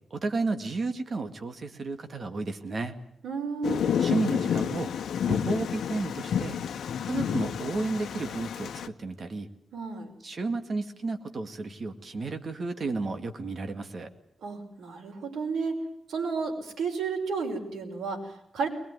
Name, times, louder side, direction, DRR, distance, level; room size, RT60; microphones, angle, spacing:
voice 1, 0.1-2.9 4.0-4.9 5.3-6.6 7.0-9.5 10.2-14.1, right 3 dB, 35° right, 7 dB, 2.2 m, -32 dB
voice 2, 3.2-3.9 9.7-10.1 14.4-15.8 16.1-18.7, right 4 dB, 85° right, 2 dB, 5.5 m, -32 dB
Thunder, 3.6-8.9, left 8 dB, 80° left, 1.1 m, -30 dB
22.0 x 21.0 x 9.7 m, 0.72 s
wide cardioid pair, 165°, 0 cm